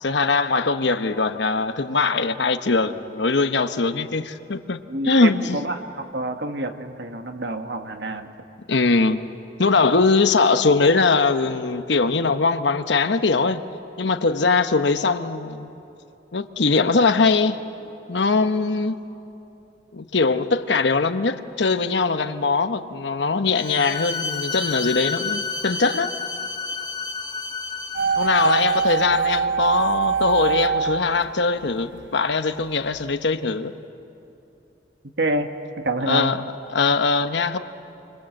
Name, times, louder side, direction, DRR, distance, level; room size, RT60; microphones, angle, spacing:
voice 1, 0.0-5.6 8.7-9.2 9.6-13.6 14.0-15.7 16.3-17.6 18.1-19.0 19.9-26.1 28.2-33.7 36.0-36.4 36.7-37.6, left 4 dB, 70° left, 9 dB, 1.0 m, -21 dB
voice 2, 4.9-8.3 35.2-35.5 35.8-36.3, right 2 dB, 65° right, 6 dB, 1.5 m, -27 dB
Bowed string instrument, 23.5-29.0, left 4 dB, 25° left, 1.3 m, -30 dB
sound 1, 27.9-32.1 32.3-32.4, right 6 dB, 85° right, 0.7 m, -24 dB
29.0 x 25.0 x 7.7 m, 2.9 s
head